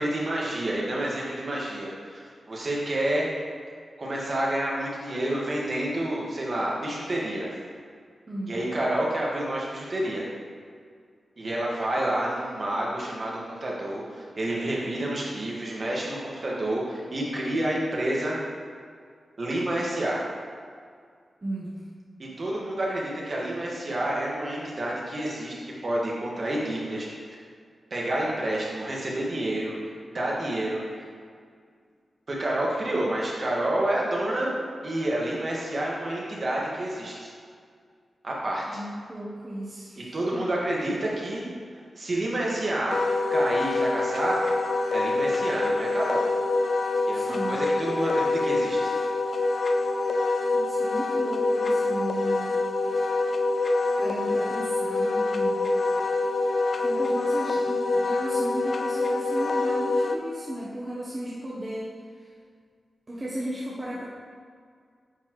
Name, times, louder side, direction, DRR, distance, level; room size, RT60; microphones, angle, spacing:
voice 1, 0.0-3.3 4.0-7.5 8.5-10.2 11.4-18.3 19.4-20.2 22.4-25.5 25.8-27.1 27.9-29.7 30.1-30.8 32.3-34.5 34.8-37.3 38.2-38.8 40.0-43.0 43.3-44.4 44.9-46.3 47.1-48.9, right 1 dB, 50° right, -4 dB, 1.7 m, -29 dB
voice 2, 8.3-8.6 21.4-21.8 38.7-40.4 47.1-47.6 50.5-52.5 54.0-55.6 56.8-62.3 63.1-64.0, right 1 dB, 30° right, -7 dB, 1.1 m, -35 dB
Wind instrument woodwind instrument, 42.9-60.2, left 2 dB, 60° left, 0.4 m, -25 dB
9.9 x 4.4 x 3.2 m, 2.1 s
wide cardioid pair, 90°, 0 cm